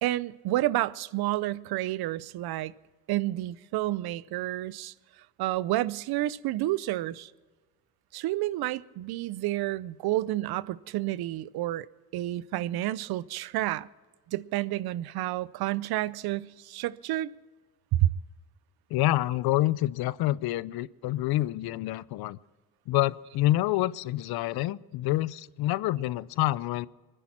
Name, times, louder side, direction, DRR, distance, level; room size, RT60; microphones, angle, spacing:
voice 1, 0.0-2.7 3.1-4.9 5.4-7.3 8.1-11.9 12.1-13.9 14.3-17.3 17.9-18.1, right 15 dB, 85° right, 0.6 m, -30 dB
voice 2, 18.9-22.4 22.9-26.9, left 16 dB, 90° left, 0.5 m, -27 dB
22.0 x 10.0 x 5.9 m
cardioid pair, 75°, 36 cm